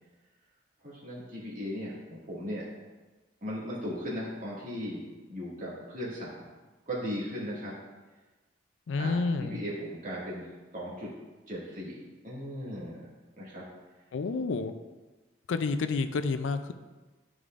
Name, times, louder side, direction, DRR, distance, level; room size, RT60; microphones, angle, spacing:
voice 1, 0.8-2.7 3.4-6.5 6.9-7.8 9.0-10.5 10.7-11.1 11.5-13.1 13.4-13.6, equal, 45° right, -7 dB, 2.0 m, -37 dB
voice 2, 8.9-9.6 14.1-14.7 15.5-16.7, left 4 dB, 85° left, 9 dB, 0.4 m, -29 dB
9.9 x 4.9 x 2.5 m, 1.2 s
head